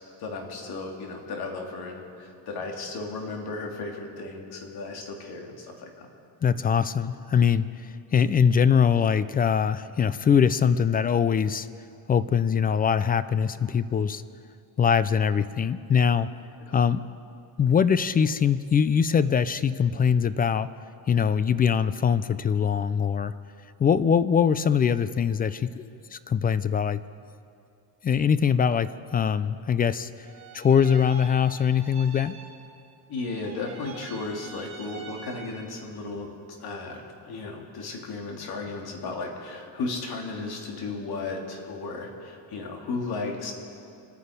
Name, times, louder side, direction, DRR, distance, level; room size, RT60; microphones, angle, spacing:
voice 1, 0.2-6.1 16.7-16.8 33.1-36.3 36.6-43.5, left 3 dB, 55° left, 1 dB, 2.9 m, -35 dB
voice 2, 6.4-11.7 12.1-14.2 14.8-16.3 16.7-17.0 17.6-20.7 21.1-23.3 23.8-27.0 28.0-30.1 30.5-32.3, left 7 dB, 20° left, 15 dB, 0.3 m, -22 dB
sound 1, 30.2-32.9 33.1-35.9, right 6 dB, 40° right, 2.8 m, -45 dB
26.5 x 9.6 x 5.2 m, 2.5 s
cardioid pair, 120°, 45 cm